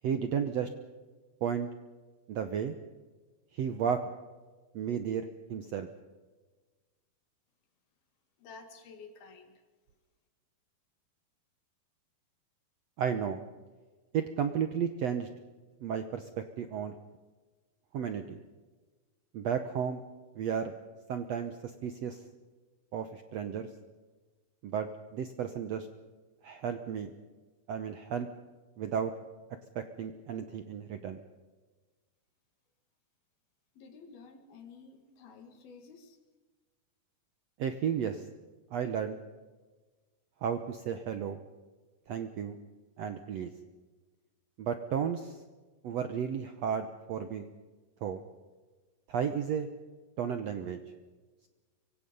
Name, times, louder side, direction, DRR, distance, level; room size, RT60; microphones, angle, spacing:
voice 1, 0.0-0.7 1.4-1.7 2.3-2.7 3.5-4.1 4.7-5.9 13.0-13.4 14.1-15.3 15.8-16.9 17.9-18.4 19.3-20.0 20.3-20.7 21.1-22.2 22.9-23.7 24.6-25.9 26.4-27.1 27.7-28.3 28.8-29.1 29.7-31.2 37.6-38.2 38.7-39.2 40.4-41.4 42.1-42.6 43.0-43.5 44.6-45.4 45.8-47.5 48.0-48.2 49.1-49.7 50.2-50.8, right 7 dB, 75° right, 8 dB, 1.6 m, -33 dB
voice 2, 8.4-9.6 33.8-36.2, left 4 dB, 80° left, 5 dB, 4.3 m, -51 dB
24.5 x 24.5 x 5.5 m, 1.3 s
omnidirectional pair, 4.3 m